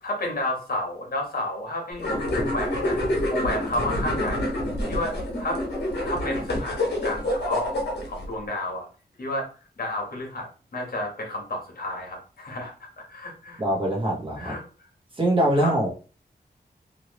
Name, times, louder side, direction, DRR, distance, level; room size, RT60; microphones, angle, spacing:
voice 1, 0.0-3.0 3.3-4.5 4.9-5.6 6.0-7.7 8.1-8.9 9.2-9.5 9.8-13.6 14.4-14.6 15.6-15.7, left 1 dB, 60° left, 0 dB, 1.3 m, -31 dB
sound 1, 2.0-8.2, left 1 dB, 85° left, 1.2 m, -27 dB
voice 2, 13.6-14.5 15.2-15.9, right 1 dB, 30° right, -2 dB, 1.0 m, -23 dB
3.0 x 2.6 x 3.0 m, 0.36 s
wide cardioid pair, 115°, 17 cm